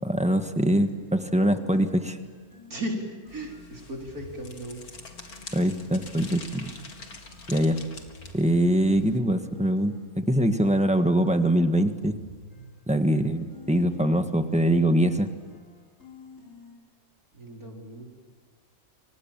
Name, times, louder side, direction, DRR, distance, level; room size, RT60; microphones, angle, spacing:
voice 1, 0.0-2.2 5.5-6.7 7.5-7.8 8.3-12.2 12.9-15.3, right 1 dB, 5° right, 7 dB, 1.4 m, -23 dB
sound 1, 0.9-16.7, left 2 dB, 60° left, 7.7 m, -50 dB
voice 2, 2.7-3.0 3.3-4.8 17.3-18.1, right 1 dB, 80° right, 0 dB, 5.0 m, -36 dB
sound 2, 3.3-9.2, left 3 dB, 85° left, 2.8 m, -45 dB
29.5 x 25.0 x 7.5 m, 1.5 s
omnidirectional pair, 1.5 m